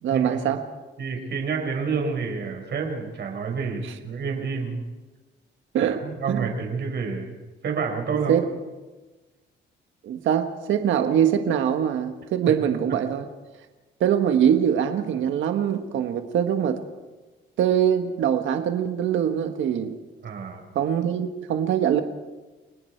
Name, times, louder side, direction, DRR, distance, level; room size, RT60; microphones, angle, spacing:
voice 1, 0.0-0.6 3.8-3.9 5.7-6.5 8.3-8.5 10.0-13.3 14.0-16.8 17.6-20.0 20.7-22.0, right 9 dB, 75° right, 6 dB, 1.5 m, -23 dB
voice 2, 1.0-4.8 5.8-7.3 7.6-8.4 20.2-20.6, right 5 dB, 60° right, 2 dB, 5.0 m, -29 dB
30.0 x 19.0 x 4.6 m, 1.2 s
cardioid pair, 90°, 20 cm